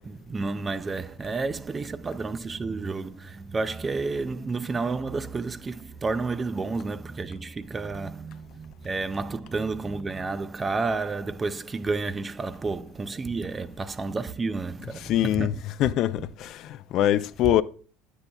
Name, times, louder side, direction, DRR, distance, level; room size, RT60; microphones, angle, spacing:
voice 1, 0.0-15.6, right 3 dB, 25° right, 0.4 m, -31 dB
voice 2, 15.1-15.5 15.8-17.6, left 12 dB, 60° left, 0.3 m, -23 dB
9.6 x 7.1 x 2.2 m
hypercardioid pair, 80°, 0 cm